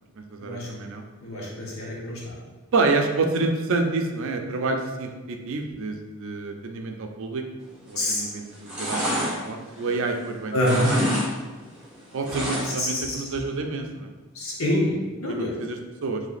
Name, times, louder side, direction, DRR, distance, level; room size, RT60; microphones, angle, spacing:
voice 1, 0.2-1.0 2.7-7.4 7.9-9.0 9.5-11.0 12.1-14.1 15.3-16.2, right 3 dB, 65° right, 4 dB, 0.4 m, -28 dB
voice 2, 1.2-2.3 8.0-8.2 10.5-10.9 12.6-13.2 14.3-15.6, left 1 dB, 70° left, -4 dB, 1.1 m, -26 dB
sound 1, 7.8-8.2 8.5-10.3 10.6-11.3 11.5-13.0 13.3-13.4, equal, 5° right, 1.0 m, -28 dB
3.2 x 2.8 x 4.0 m, 1.3 s
head